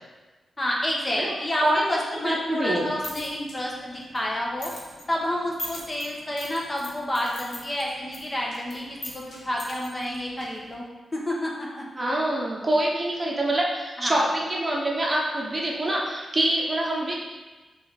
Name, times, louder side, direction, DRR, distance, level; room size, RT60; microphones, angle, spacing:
voice 1, 0.6-4.7 5.1-10.8 11.1-11.9 14.0-14.3, left 1 dB, 25° left, -3 dB, 1.2 m, -29 dB
voice 2, 2.2-2.9 12.0-17.2, right 1 dB, 25° right, -3 dB, 1.0 m, -25 dB
sound 1, 2.7-10.8, equal, 70° left, 1.5 m, -42 dB
6.7 x 3.4 x 4.1 m, 1.2 s
cardioid pair, 90°, 0 cm